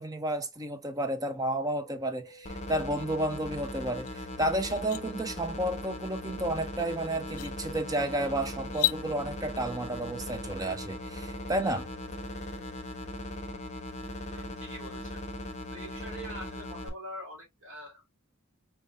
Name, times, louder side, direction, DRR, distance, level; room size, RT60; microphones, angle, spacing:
voice 1, 0.0-11.9, right 1 dB, 15° right, 0.5 m, -32 dB
sound 1, 1.4-12.8, right 2 dB, 40° right, 2.7 m, -54 dB
sound 2, 2.5-16.9, left 1 dB, 35° left, 0.8 m, -39 dB
sound 3, 4.1-4.2 4.6-5.0 6.7-6.8 7.3-7.5 8.7-9.0, left 14 dB, 85° left, 0.4 m, -31 dB
voice 2, 14.3-15.2 15.7-18.1, equal, 65° right, 3.0 m, -44 dB
4.5 x 3.4 x 2.5 m
head